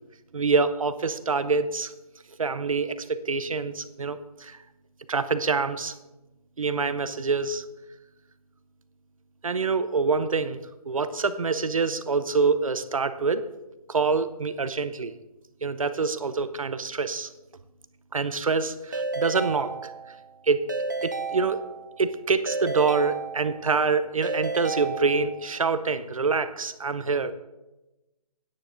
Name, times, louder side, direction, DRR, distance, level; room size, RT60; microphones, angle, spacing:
voice 1, 0.3-1.9 2.4-4.6 5.1-5.9 6.6-7.6 9.4-10.6 10.8-13.5 13.9-15.1 15.6-17.3 18.1-19.9 20.4-20.6 21.0-21.6 22.0-27.3, right 4 dB, 60° right, 13 dB, 0.7 m, -26 dB
Keyboard (musical) / Ringtone, 18.9-20.3 20.7-22.0 22.5-23.8 24.2-25.6, right 3 dB, 30° right, 0.5 m, -32 dB
13.5 x 9.6 x 3.8 m, 1.0 s
hypercardioid pair, 175°, 20 cm